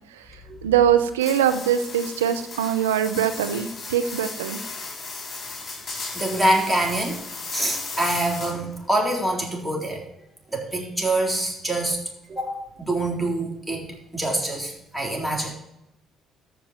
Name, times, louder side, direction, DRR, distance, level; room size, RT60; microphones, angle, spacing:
voice 1, 0.6-4.6, right 9 dB, 90° right, 8 dB, 0.7 m, -22 dB
sound 1, 1.2-8.8, left 3 dB, 40° left, 4.0 m, -36 dB
voice 2, 6.1-7.2 7.5-10.0 10.5-12.0 12.3-12.5 12.8-15.5, right 1 dB, 10° right, -1 dB, 3.8 m, -25 dB
14.5 x 5.4 x 4.5 m, 0.84 s
hypercardioid pair, 50°, 0 cm